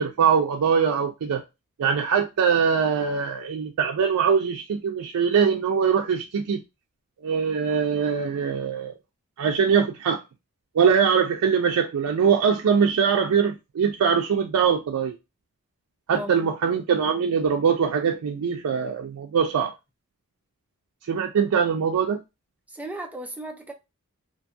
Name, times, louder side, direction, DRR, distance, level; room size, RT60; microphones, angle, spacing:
voice 1, 0.0-1.4 1.8-6.6 7.2-8.9 9.4-10.2 10.7-15.1 16.1-19.7 21.1-22.2, right 6 dB, 85° right, 0.4 m, -22 dB
voice 2, 16.1-16.5 22.7-23.7, right 1 dB, 5° right, 0.3 m, -35 dB
2.5 x 2.3 x 2.6 m
head